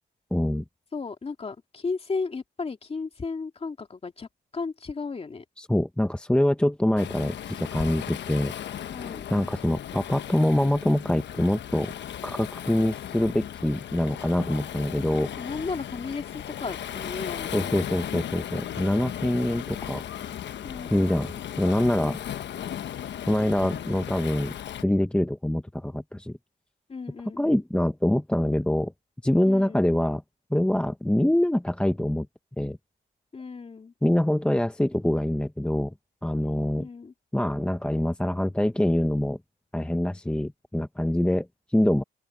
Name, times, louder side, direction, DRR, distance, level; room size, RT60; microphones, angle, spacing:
voice 1, 0.3-0.6 5.6-8.5 9.3-11.9 12.2-15.3 17.5-20.0 20.9-22.2 23.3-24.5 24.8-26.3 27.4-28.9 29.2-30.2 30.5-32.3 32.6-32.8 34.0-35.9 36.2-36.9 37.3-39.4 39.7-42.0, left 1 dB, 5° left, 0.9 m, -25 dB
voice 2, 0.9-5.4 8.9-9.3 15.4-18.2 20.6-21.4 22.0-22.3 26.9-27.6 29.4-29.9 33.3-33.9 36.8-37.1, left 4 dB, 30° left, 2.5 m, -35 dB
Waves surf, 7.0-24.8, left 10 dB, 65° left, 1.1 m, -36 dB
open air
cardioid pair, 90°, 20 cm